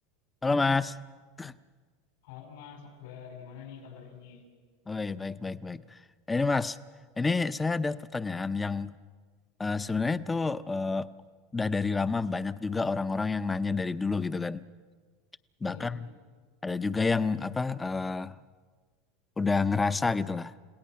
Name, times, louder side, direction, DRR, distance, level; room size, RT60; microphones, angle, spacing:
voice 1, 0.4-1.0 1.4-1.5 4.9-6.0 6.3-6.8 7.2-8.9 9.6-11.1 11.5-14.6 15.6-16.1 16.6-18.3 19.4-20.5, left 4 dB, 15° left, 13 dB, 0.6 m, -29 dB
voice 2, 2.2-4.4 15.6-16.1, left 7 dB, 80° left, 3 dB, 4.8 m, -46 dB
30.0 x 17.0 x 5.8 m, 1.5 s
supercardioid pair, 125°, 0 cm